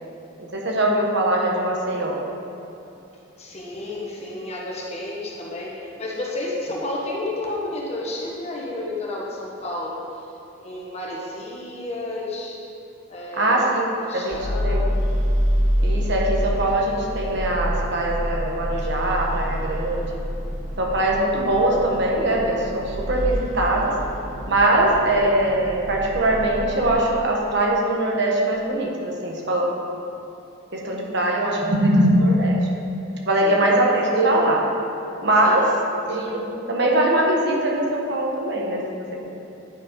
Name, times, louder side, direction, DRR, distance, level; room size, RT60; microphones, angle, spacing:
voice 1, 0.5-2.2 13.4-13.9 14.1-14.8 15.8-20.2 20.8-24.0 24.5-29.7 30.7-32.6 33.3-34.7 35.2-35.8 36.1-38.8, right 1 dB, 55° right, -1 dB, 1.2 m, -21 dB
voice 2, 3.3-10.2 10.6-12.6 13.1-13.6 14.0-15.0 30.8-31.1 33.4-33.6 35.4-35.7, left 2 dB, 30° left, -4 dB, 1.3 m, -31 dB
sound 1, 14.3-26.9, equal, 35° right, 0.8 m, -27 dB
9.3 x 5.2 x 5.3 m, 2.8 s
head